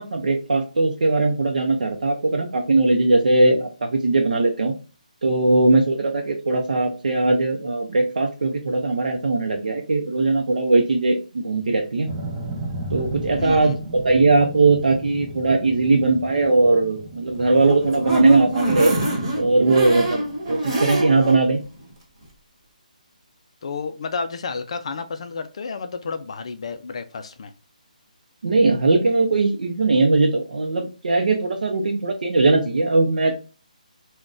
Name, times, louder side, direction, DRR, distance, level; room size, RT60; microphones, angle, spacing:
voice 1, 0.0-4.7 5.2-12.1 12.9-18.9 19.3-21.6 28.4-33.3, right 3 dB, 75° right, 2 dB, 0.6 m, -19 dB
sound 1, 12.1-20.3, right 2 dB, 10° right, 0.6 m, -36 dB
voice 2, 13.4-13.8 23.6-27.5, left 4 dB, 45° left, 9 dB, 0.3 m, -31 dB
sound 2, 17.4-21.4 21.8-21.9 22.2-22.3, right 1 dB, 35° right, 1.2 m, -26 dB
3.7 x 2.2 x 2.4 m, 0.35 s
hypercardioid pair, 165°, 4 cm